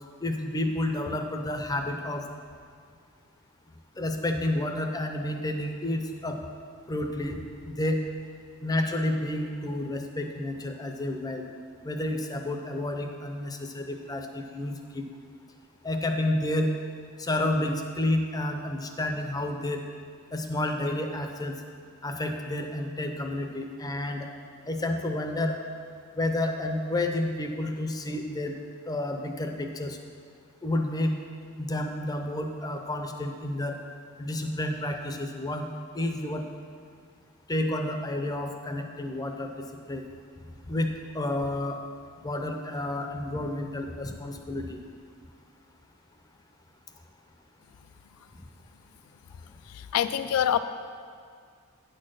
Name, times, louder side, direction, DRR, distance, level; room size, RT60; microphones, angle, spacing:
voice 1, 0.2-2.3 4.0-6.4 6.9-8.0 8.6-11.4 11.8-15.0 15.8-16.7 17.2-19.8 20.3-21.6 22.0-24.3 24.7-25.6 26.1-28.5 28.9-30.0 30.6-31.1 31.6-33.8 34.2-35.7 35.9-36.4 37.5-40.0 40.7-41.8 42.2-44.8, left 1 dB, 15° left, 4 dB, 0.5 m, -30 dB
voice 2, 49.7-50.6, left 10 dB, 75° left, 11 dB, 0.3 m, -25 dB
9.3 x 4.4 x 6.3 m, 2.1 s
head